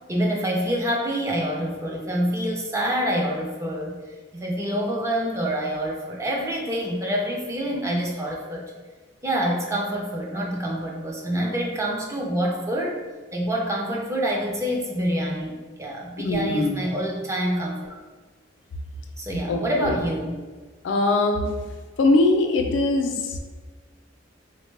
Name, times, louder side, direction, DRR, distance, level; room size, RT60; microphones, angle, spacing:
voice 1, 0.1-4.0 4.3-8.6 9.2-13.0 13.3-18.0 19.2-20.3, equal, 15° right, -1 dB, 0.5 m, -26 dB
voice 2, 16.2-16.8 19.5-20.0 20.8-21.5 22.0-23.4, left 2 dB, 75° left, 4 dB, 0.4 m, -22 dB
3.4 x 2.1 x 3.2 m, 1.4 s
head